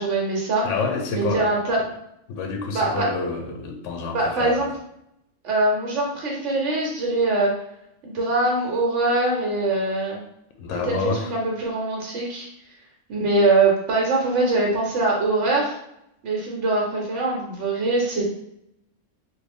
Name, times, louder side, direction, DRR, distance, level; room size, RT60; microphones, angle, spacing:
voice 1, 0.0-0.7 1.1-1.8 2.7-3.1 4.1-4.7 5.4-7.5 8.0-10.2 10.9-12.5 13.1-15.8 16.2-18.2, right 2 dB, 70° right, -2 dB, 1.0 m, -22 dB
voice 2, 0.6-1.5 2.3-4.6 10.6-11.3, left 4 dB, 80° left, 3 dB, 0.9 m, -28 dB
3.2 x 2.3 x 3.4 m, 0.78 s
omnidirectional pair, 1.3 m